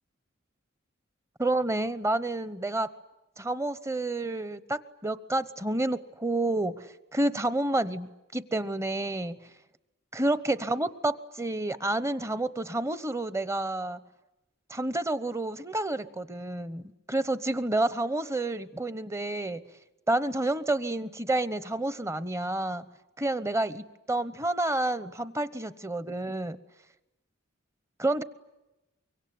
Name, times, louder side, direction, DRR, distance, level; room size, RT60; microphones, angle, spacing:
voice 1, 1.4-2.9 3.4-9.4 10.1-14.0 14.7-19.6 20.1-22.9 23.2-26.6 28.0-28.2, right 2 dB, 15° right, 14 dB, 1.0 m, -29 dB
25.0 x 24.0 x 9.5 m, 0.95 s
head